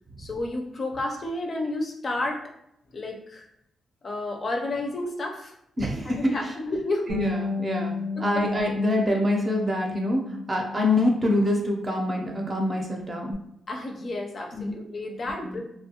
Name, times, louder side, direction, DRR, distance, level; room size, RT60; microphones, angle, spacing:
voice 1, 0.2-2.4 2.9-3.5 4.0-5.5 6.1-7.1 8.2-8.4 13.7-15.6, left 2 dB, 40° left, 2 dB, 0.5 m, -31 dB
voice 2, 5.8-6.4 7.1-10.2 10.5-13.4 14.5-14.7 15.4-15.6, left 1 dB, 25° right, 0 dB, 0.6 m, -25 dB
Bass guitar, 7.1-13.3, left 4 dB, 80° right, 0.9 m, -34 dB
3.0 x 2.2 x 2.8 m, 0.78 s
cardioid pair, 120°, 0 cm